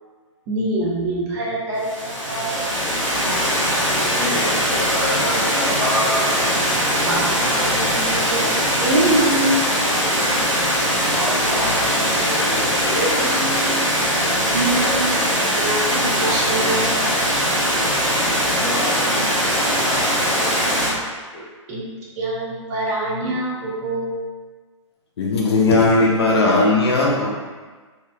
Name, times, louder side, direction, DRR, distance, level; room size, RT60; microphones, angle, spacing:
voice 1, 0.5-2.6 7.1-9.6 14.4-17.0 21.7-21.8 22.2-24.2, right 1 dB, 30° right, -5 dB, 0.8 m, -24 dB
Water, 1.8-20.9, equal, 85° right, 1.0 m, -21 dB
voice 2, 4.1-6.3 11.1-13.8 18.5-21.1 21.3-21.4, equal, 15° left, -8 dB, 1.0 m, -28 dB
voice 3, 25.2-27.3, left 2 dB, 55° left, -2 dB, 0.6 m, -17 dB
3.0 x 2.8 x 2.2 m, 1.4 s
figure-of-eight pair, 120°, 16 cm